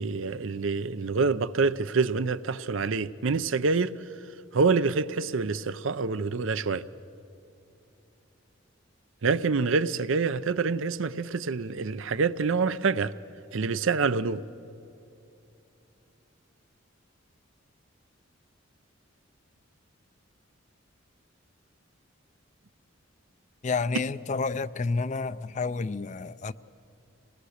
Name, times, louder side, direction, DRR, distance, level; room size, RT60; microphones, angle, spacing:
voice 1, 0.0-3.9 4.5-6.8 9.2-13.1 13.5-14.4, right 4 dB, 75° right, 0.6 m, -26 dB
voice 2, 23.6-26.5, left 4 dB, 35° left, 0.4 m, -30 dB
26.0 x 19.0 x 6.5 m
head